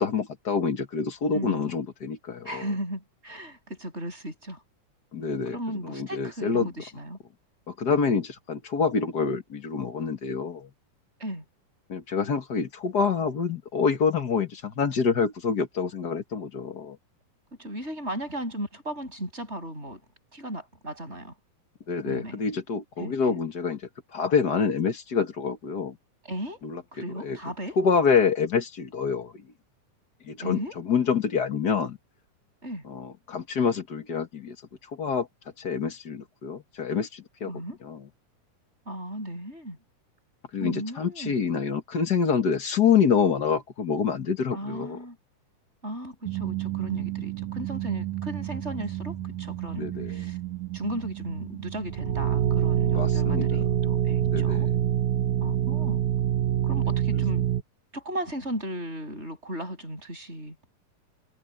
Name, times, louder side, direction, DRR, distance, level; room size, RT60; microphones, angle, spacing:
voice 1, 0.0-2.7 5.1-5.6 5.8-6.7 7.7-10.7 11.9-17.0 21.9-23.8 24.1-26.0 26.6-26.8 27.2-27.4 27.8-29.4 30.2-32.0 32.8-34.5 34.9-35.3 35.6-37.5 37.8-38.0 40.5-45.0 49.8-50.2 52.9-53.5 54.3-54.7, left 6 dB, 40° left, 1.6 m, -26 dB
voice 2, 1.3-1.7 2.4-4.6 5.5-7.2 11.2-11.4 17.6-20.0 20.3-21.3 22.0-22.4 23.0-23.4 26.2-26.6 26.9-27.8 30.4-30.8 32.6-32.8 37.4-37.8 38.9-39.8 40.6-41.4 44.5-45.2 45.8-50.4 50.7-54.7 55.4-56.0 56.6-57.5 57.9-60.6, equal, 20° right, 7.5 m, -36 dB
sound 1, 46.2-57.6, right 10 dB, 70° right, 2.4 m, -27 dB
omnidirectional pair, 3.7 m